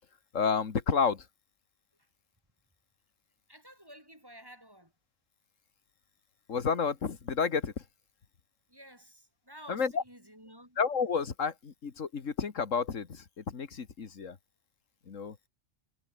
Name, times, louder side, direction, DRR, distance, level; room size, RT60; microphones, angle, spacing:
voice 1, 0.3-1.3 6.5-7.7 9.7-10.0 10.8-14.4 15.1-15.4, left 6 dB, 90° left, 2.1 m, -30 dB
voice 2, 3.5-4.9 8.7-10.8, equal, 15° right, 6.0 m, -52 dB
omnidirectional pair, 1.3 m